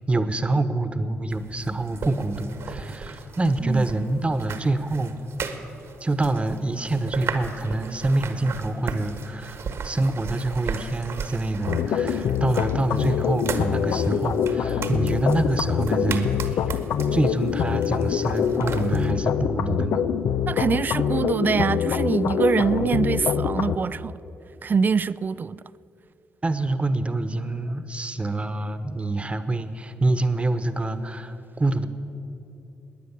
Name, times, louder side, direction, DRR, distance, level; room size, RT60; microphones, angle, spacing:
voice 1, 0.1-5.2 6.0-9.6 9.8-16.3 17.1-20.1 26.4-31.9, right 2 dB, 25° right, 1.1 m, -26 dB
sound 1, 1.3-19.1, right 5 dB, 65° right, 1.4 m, -37 dB
sound 2, 11.6-23.8, left 8 dB, 75° left, 0.6 m, -25 dB
voice 2, 20.5-24.1 24.6-25.6, right 5 dB, 40° right, 0.4 m, -24 dB
20.5 x 9.5 x 7.3 m
supercardioid pair, 60°, 5 cm